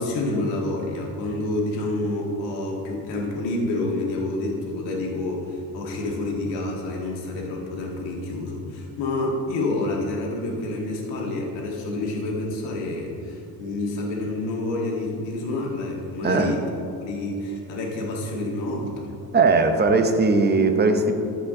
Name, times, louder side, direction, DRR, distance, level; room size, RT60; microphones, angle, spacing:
voice 1, 0.0-16.6 17.0-19.1, left 2 dB, 85° left, -1 dB, 1.8 m, -28 dB
voice 2, 16.2-16.6 19.3-21.1, right 3 dB, 25° right, 6 dB, 0.8 m, -19 dB
14.0 x 5.0 x 3.7 m, 2.5 s
cardioid pair, 100°, 41 cm